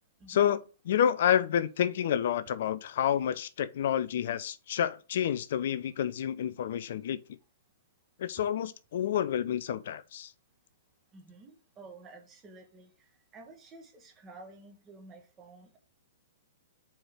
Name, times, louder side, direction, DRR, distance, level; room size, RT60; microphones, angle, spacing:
voice 1, 0.3-7.2 8.2-10.3, left 9 dB, 55° left, 0.4 m, -29 dB
voice 2, 11.1-12.9 13.3-15.8, right 3 dB, 20° right, 1.5 m, -51 dB
4.6 x 4.3 x 4.7 m
figure-of-eight pair, 110°, 0 cm